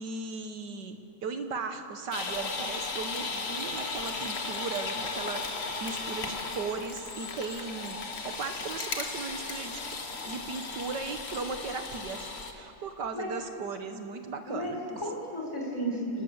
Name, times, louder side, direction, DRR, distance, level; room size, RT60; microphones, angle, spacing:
voice 1, 0.0-15.0, right 4 dB, 60° right, 7 dB, 1.7 m, -37 dB
sound 1, 2.1-12.5, left 4 dB, 35° left, 1.4 m, -36 dB
voice 2, 14.5-16.2, equal, 10° left, -2 dB, 4.2 m, -33 dB
29.5 x 12.5 x 8.0 m, 2.8 s
omnidirectional pair, 2.3 m